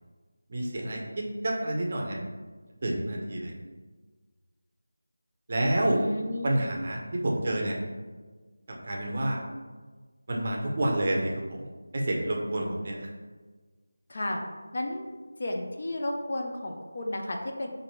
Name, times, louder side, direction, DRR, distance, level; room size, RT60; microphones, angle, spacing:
voice 1, 0.5-2.2 2.8-3.5 5.5-6.0 6.4-7.8 8.8-9.4 10.3-13.1, right 1 dB, 30° right, -1 dB, 0.6 m, -29 dB
voice 2, 5.8-6.7 14.1-14.4 14.7-15.0 15.4-17.7, left 1 dB, 40° left, 1 dB, 0.4 m, -33 dB
4.3 x 2.5 x 4.5 m, 1.3 s
figure-of-eight pair, 175°, 0 cm